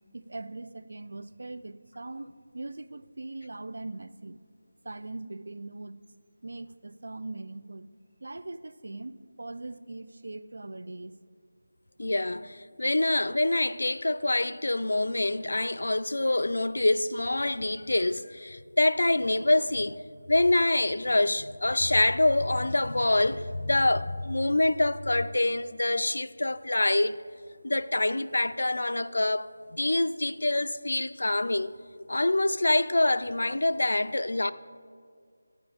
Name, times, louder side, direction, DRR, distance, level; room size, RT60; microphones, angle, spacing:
voice 1, 0.1-4.4 4.8-6.0 6.4-7.9 8.2-11.2, right 2 dB, 65° right, 0.4 m, -41 dB
voice 2, 12.0-27.2 27.6-31.7 32.0-34.5, left 2 dB, 75° left, 0.4 m, -26 dB
12.0 x 9.7 x 3.5 m
figure-of-eight pair, 175°, 0 cm